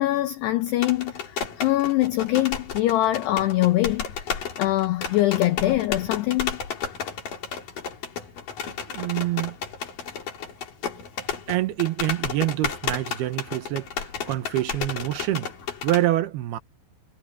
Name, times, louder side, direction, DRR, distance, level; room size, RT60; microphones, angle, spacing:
voice 1, 0.0-6.6, left 15 dB, 80° left, 2.4 m, -23 dB
sound 1, 0.7-16.1, left 7 dB, 45° left, 4.1 m, -33 dB
voice 2, 8.9-9.6 11.5-15.5 15.8-16.6, right 15 dB, 75° right, 2.5 m, -26 dB
omnidirectional pair, 5.9 m